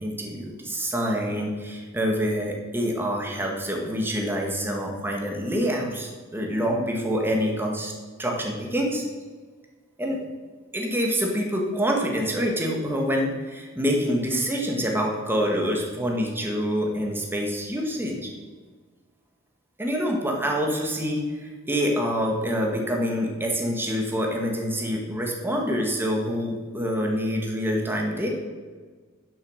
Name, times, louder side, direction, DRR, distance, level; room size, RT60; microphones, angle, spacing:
voice 1, 0.0-7.9 8.2-9.1 10.0-10.2 10.7-18.3 19.8-28.4, equal, 10° right, 0 dB, 1.9 m, -26 dB
10.5 x 7.6 x 6.5 m, 1.4 s
head